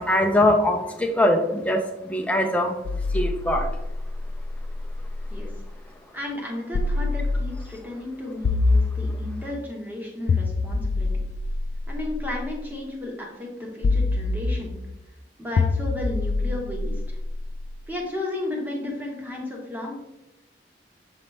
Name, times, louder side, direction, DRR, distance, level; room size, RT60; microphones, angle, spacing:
voice 1, 0.0-2.7 3.1-3.7, left 1 dB, 10° left, 2 dB, 0.6 m, -22 dB
sound 1, 2.8-5.6 6.7-7.8 8.4-9.6 10.3-12.5 13.8-14.9 15.6-17.7, left 3 dB, 65° left, 0.3 m, -26 dB
voice 2, 6.1-11.1 11.9-14.7 15.4-17.2 17.9-19.9, left 1 dB, 10° right, -1 dB, 1.2 m, -33 dB
7.3 x 4.1 x 3.3 m, 0.93 s
head